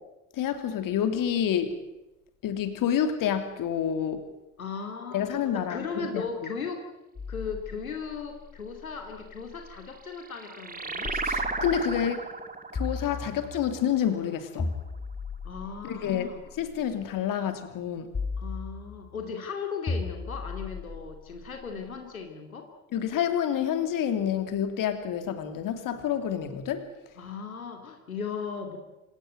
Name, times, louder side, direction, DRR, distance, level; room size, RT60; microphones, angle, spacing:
voice 1, 0.4-1.8 2.4-4.2 5.1-6.3 11.2-12.2 12.7-14.7 15.8-18.1 22.9-26.9, left 9 dB, 50° left, 9 dB, 3.1 m, -28 dB
voice 2, 4.6-6.8 7.3-11.2 15.4-16.4 18.4-22.7 27.1-28.8, left 5 dB, 90° left, 4 dB, 2.5 m, -37 dB
sound 1, 7.2-9.9 11.0-12.1 12.7-13.9 14.6-16.8 18.1-19.2 19.9-22.0, left 4 dB, 25° left, 4.0 m, -37 dB
sound 2, 9.8-14.9, right 3 dB, 20° right, 3.0 m, -35 dB
26.0 x 17.5 x 9.1 m, 0.98 s
figure-of-eight pair, 60°, 41 cm